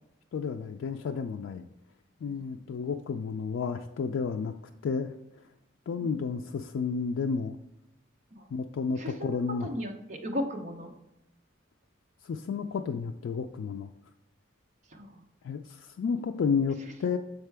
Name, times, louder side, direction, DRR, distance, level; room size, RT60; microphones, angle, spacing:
voice 1, 0.3-1.7 2.2-4.5 4.8-5.1 5.9-7.6 8.5-9.7 12.2-13.9 15.4-17.2, left 5 dB, 80° left, 5 dB, 0.3 m, -31 dB
voice 2, 9.0-9.4 9.6-10.9 14.9-15.2, equal, 35° right, 2 dB, 0.8 m, -36 dB
6.6 x 4.6 x 3.3 m, 0.87 s
head